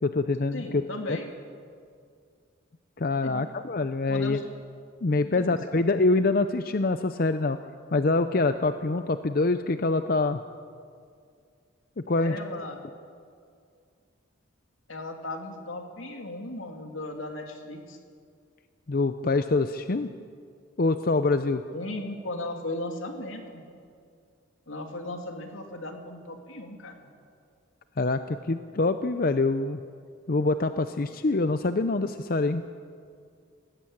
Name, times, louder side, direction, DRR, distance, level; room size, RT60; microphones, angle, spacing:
voice 1, 0.0-1.2 3.0-4.4 5.0-7.6 7.9-10.4 12.1-12.4 18.9-20.1 20.8-21.6 28.0-29.8 30.3-32.6, left 3 dB, 45° left, 10 dB, 0.6 m, -25 dB
voice 2, 0.5-1.3 3.2-3.5 4.1-4.5 5.2-5.8 12.2-12.8 14.9-18.0 21.7-23.6 24.7-27.1, left 2 dB, 80° left, 3 dB, 2.7 m, -36 dB
19.5 x 16.5 x 8.7 m, 2.3 s
head